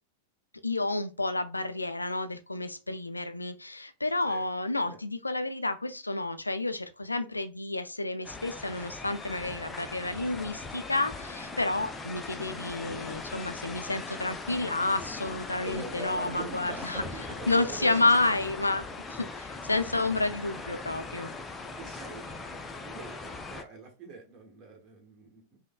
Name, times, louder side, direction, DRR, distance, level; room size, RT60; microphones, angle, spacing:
voice 1, 0.6-17.0 17.5-21.3, left 2 dB, 80° left, 0.3 m, -30 dB
sound 1, 8.2-23.6, left 3 dB, 15° left, 0.4 m, -40 dB
voice 2, 15.6-18.1 21.8-22.3 22.8-25.6, right 3 dB, 30° right, 1.2 m, -43 dB
5.1 x 2.1 x 2.2 m
figure-of-eight pair, 90°, 0 cm